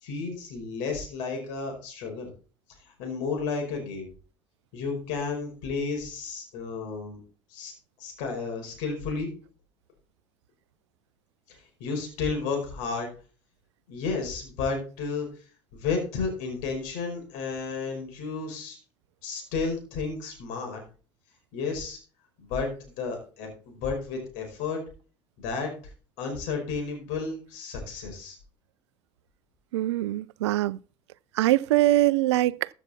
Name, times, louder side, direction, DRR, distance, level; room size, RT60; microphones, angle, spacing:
voice 1, 0.0-2.3 2.9-4.1 4.7-7.2 7.5-7.7 8.0-9.3 11.5-13.1 13.9-15.3 15.7-18.8 19.2-20.8 21.5-22.0 22.4-24.8 25.4-25.7 26.2-28.4, left 4 dB, 65° left, 5.1 m, -32 dB
voice 2, 29.7-30.8 31.4-32.7, right 15 dB, 75° right, 0.5 m, -23 dB
14.5 x 7.2 x 4.3 m
hypercardioid pair, 70°, 15 cm